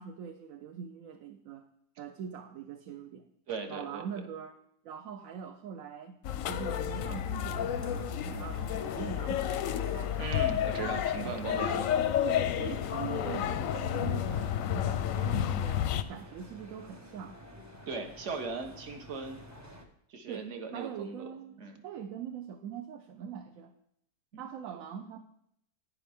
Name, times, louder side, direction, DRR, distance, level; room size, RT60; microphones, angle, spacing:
voice 1, 0.0-1.7 2.0-3.3 3.7-4.6 4.8-6.2 6.5-10.3 11.2-11.4 12.2-17.4 20.3-21.6 21.8-23.7 24.4-25.2, right 8 dB, 65° right, 7 dB, 0.9 m, -42 dB
voice 2, 3.5-4.1 8.3-8.5 10.2-11.9 12.4-12.5 17.9-19.4 20.1-21.3 21.6-21.8 24.3-24.4, right 4 dB, 50° right, 6 dB, 1.3 m, -38 dB
sound 1, 6.2-16.0, left 10 dB, 70° left, 0.9 m, -31 dB
sound 2, 6.9-19.9, equal, 15° right, 0.7 m, -51 dB
11.0 x 9.8 x 3.5 m, 0.73 s
omnidirectional pair, 1.7 m